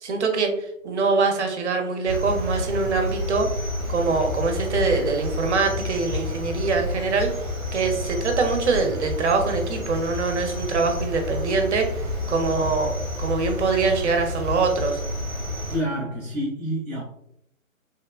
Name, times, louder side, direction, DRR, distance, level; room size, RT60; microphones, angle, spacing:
voice 1, 0.0-3.5 3.9-7.3 7.7-12.0 12.3-15.0, right 4 dB, 55° right, 4 dB, 0.6 m, -24 dB
Cricket, 2.1-15.8, left 1 dB, 15° right, 1.0 m, -29 dB
voice 2, 15.7-17.0, equal, 5° left, -21 dB, 0.4 m, -28 dB
3.0 x 2.1 x 2.2 m, 0.75 s
figure-of-eight pair, 140°, 42 cm